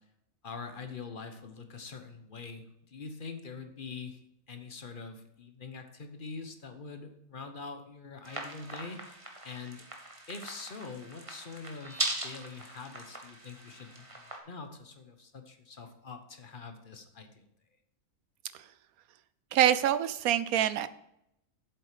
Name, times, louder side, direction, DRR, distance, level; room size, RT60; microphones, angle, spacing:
voice 1, 0.4-2.6 2.9-4.2 4.5-9.8 10.3-14.1 14.5-17.5, left 4 dB, 35° left, 7 dB, 1.1 m, -44 dB
sound 1, 8.2-14.4, right 2 dB, 20° right, 1.4 m, -40 dB
voice 2, 19.5-20.9, right 11 dB, 70° right, 14 dB, 1.0 m, -25 dB
8.0 x 7.8 x 5.0 m, 0.80 s
omnidirectional pair, 1.6 m